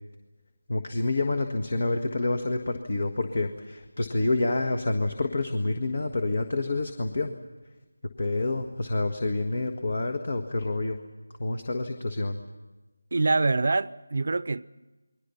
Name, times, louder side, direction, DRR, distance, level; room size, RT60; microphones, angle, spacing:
voice 1, 0.7-7.3 8.2-11.0 11.4-12.4, left 2 dB, 55° left, 1.7 m, -28 dB
voice 2, 13.1-14.6, right 3 dB, 55° right, 0.7 m, -25 dB
29.0 x 21.5 x 5.7 m
figure-of-eight pair, 165°, 0 cm